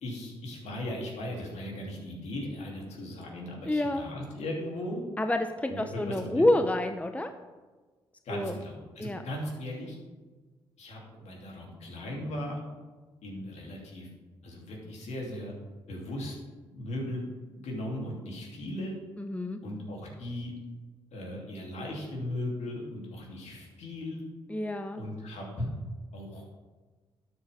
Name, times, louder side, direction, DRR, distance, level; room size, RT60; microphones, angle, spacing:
voice 1, 0.0-5.1 5.7-6.5 8.2-10.0 10.8-12.6 13.2-14.1 14.4-15.5 15.9-16.4 16.7-17.2 17.5-19.0 19.6-20.5 21.1-24.2 25.0-25.7 26.1-26.5, left 1 dB, 65° left, -2 dB, 3.0 m, -37 dB
voice 2, 3.7-4.0 5.2-7.3 8.3-8.6 9.0-9.2 19.2-19.6 24.5-25.0, left 1 dB, 10° left, 7 dB, 0.8 m, -28 dB
12.0 x 7.4 x 3.6 m, 1.3 s
hypercardioid pair, 45°, 12 cm